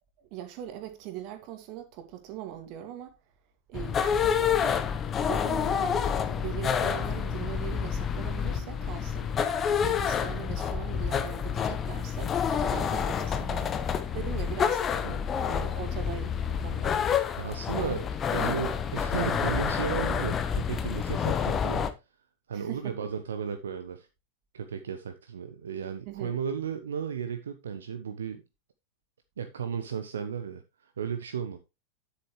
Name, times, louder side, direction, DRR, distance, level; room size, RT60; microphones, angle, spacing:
voice 1, 0.2-3.1 3.7-4.9 5.2-6.0 6.4-9.3 9.8-13.8 14.1-14.8 15.5-17.0 22.5-23.1 26.1-26.3, right 11 dB, 40° right, 2.2 m, -40 dB
sound 1, 3.7-21.9, left 7 dB, 25° left, 1.1 m, -28 dB
sound 2, 5.7-15.3, left 3 dB, 75° left, 3.6 m, -52 dB
voice 2, 17.4-21.9 22.5-24.1 24.5-28.4 29.4-31.6, right 7 dB, 65° right, 0.9 m, -34 dB
10.0 x 8.2 x 3.2 m
figure-of-eight pair, 90°, 0 cm